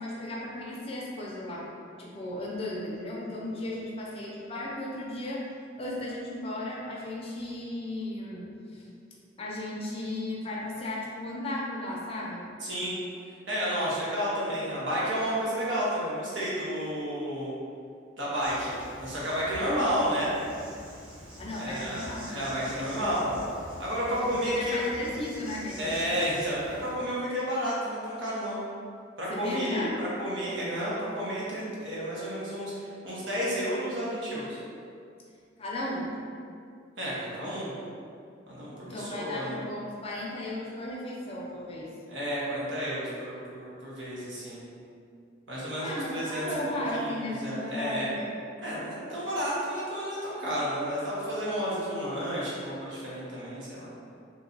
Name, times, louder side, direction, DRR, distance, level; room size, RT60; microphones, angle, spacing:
voice 1, 0.0-1.7 2.0-5.4 5.8-8.4 8.7-8.9 9.4-12.4 21.4-22.5 24.1-25.9 29.3-29.9 35.6-36.1 38.8-41.9 45.8-48.3, left 1 dB, 30° left, -4 dB, 0.5 m, -35 dB
voice 2, 12.6-12.9 13.5-17.5 18.2-20.4 21.6-23.4 23.8-24.8 25.8-28.6 29.2-34.6 37.0-37.7 38.5-39.6 42.1-44.6 45.5-48.1 48.6-53.9, equal, 90° right, -7 dB, 0.9 m, -31 dB
Insect, 18.4-26.9, equal, 25° right, 0.8 m, -46 dB
2.7 x 2.3 x 3.8 m, 2.4 s
head